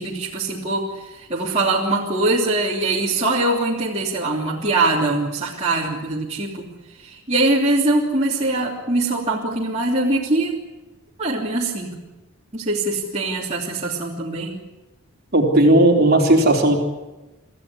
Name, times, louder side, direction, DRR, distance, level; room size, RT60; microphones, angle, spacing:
voice 1, 0.0-6.7 7.0-10.5 11.2-12.0 12.5-14.6, right 2 dB, 30° right, -4 dB, 3.2 m, -22 dB
voice 2, 15.3-16.8, right 1 dB, 45° right, 1 dB, 3.9 m, -15 dB
26.0 x 15.0 x 9.9 m, 1.1 s
head